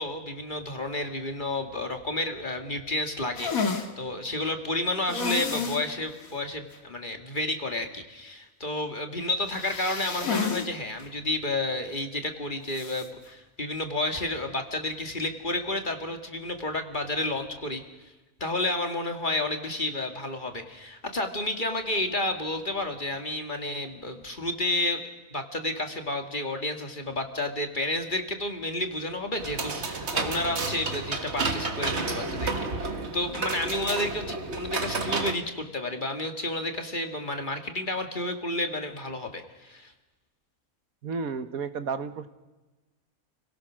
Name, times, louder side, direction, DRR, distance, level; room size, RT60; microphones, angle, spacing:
voice 1, 0.0-17.8 18.4-25.0 25.3-39.9, left 2 dB, 35° left, 5 dB, 2.0 m, -31 dB
sound 1, 3.4-3.9 5.1-5.9 6.2-6.3 6.7-6.8 9.5-10.7 11.0-11.1 12.7-13.1, left 5 dB, 65° left, 2.3 m, -30 dB
sound 2, 29.4-35.3, right 3 dB, 50° right, 1.9 m, -31 dB
voice 2, 41.0-42.3, right 5 dB, 70° right, 11 dB, 1.5 m, -32 dB
29.5 x 17.5 x 6.2 m, 1.1 s
omnidirectional pair, 1.6 m